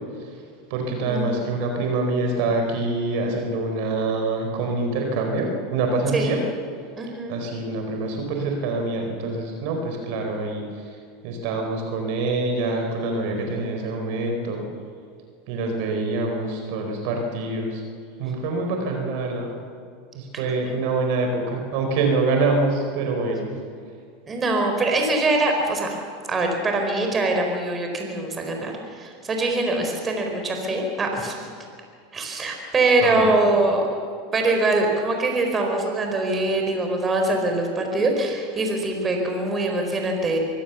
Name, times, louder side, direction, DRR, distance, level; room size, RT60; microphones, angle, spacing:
voice 1, 0.7-6.4 7.3-10.6 11.2-14.6 15.5-17.8 18.2-19.5 20.1-23.5 33.0-33.3, right 3 dB, 65° right, 3 dB, 4.4 m, -25 dB
voice 2, 7.0-7.4 20.3-20.5 24.3-25.9 26.3-31.4 32.1-33.8 34.3-40.4, right 2 dB, 25° right, 3 dB, 4.6 m, -23 dB
24.0 x 16.5 x 7.2 m, 2.3 s
hypercardioid pair, 100°, 0 cm